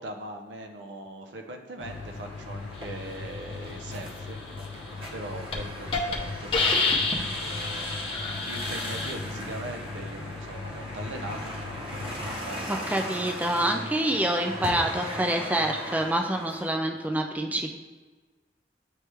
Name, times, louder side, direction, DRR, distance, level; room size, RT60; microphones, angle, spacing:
voice 1, 0.0-4.4 4.7-13.2, right 1 dB, 90° right, 4 dB, 0.7 m, -41 dB
sound 1, 1.8-12.4, left 4 dB, 75° left, 0.3 m, -40 dB
sound 2, 1.8-16.7, equal, 30° right, 0.8 m, -38 dB
Hiss, 4.9-5.1 5.5-5.6 5.9-6.1 6.5-9.1, left 3 dB, 30° left, 0.7 m, -27 dB
voice 2, 12.7-17.7, right 1 dB, 10° right, 3 dB, 0.3 m, -27 dB
9.3 x 3.1 x 3.3 m, 1.3 s
head